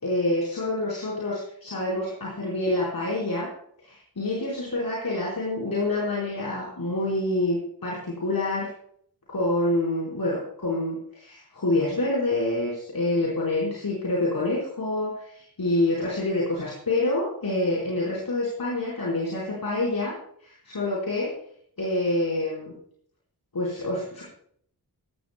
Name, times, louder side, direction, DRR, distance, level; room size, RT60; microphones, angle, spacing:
voice 1, 0.0-3.5 3.8-8.7 9.3-20.1 20.4-21.3 21.8-22.7 23.5-24.2, left 2 dB, 65° left, -5 dB, 4.6 m, -27 dB
15.5 x 14.5 x 2.2 m, 0.64 s
wide cardioid pair, 80°, 38 cm